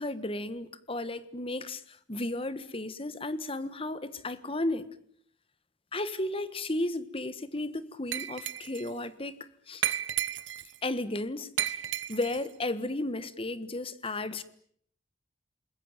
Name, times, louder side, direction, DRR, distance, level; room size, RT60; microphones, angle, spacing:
voice 1, 0.0-4.9 5.9-9.4 9.7-9.8 10.8-11.8 12.1-14.4, left 2 dB, 30° left, 15 dB, 1.4 m, -34 dB
Glass, 8.1-8.9 9.8-10.8 11.6-12.5, right 11 dB, 75° right, 1.1 m, -33 dB
28.5 x 21.5 x 9.0 m, 0.63 s
head